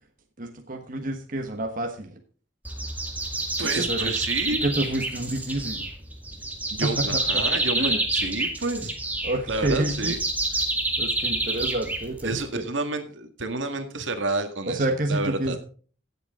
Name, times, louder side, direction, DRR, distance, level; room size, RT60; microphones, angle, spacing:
voice 1, 0.4-2.1 3.7-4.1 4.6-5.9 6.8-7.0 7.8-8.0 9.2-10.1 11.0-12.7 14.7-15.6, right 1 dB, 45° right, 4 dB, 1.3 m, -28 dB
sound 1, 2.7-12.5, right 2 dB, 10° right, 1.9 m, -28 dB
voice 2, 3.6-4.6 6.7-8.9 9.5-10.2 12.2-15.6, right 3 dB, 80° right, 7 dB, 1.8 m, -29 dB
16.0 x 8.1 x 3.7 m, 0.42 s
head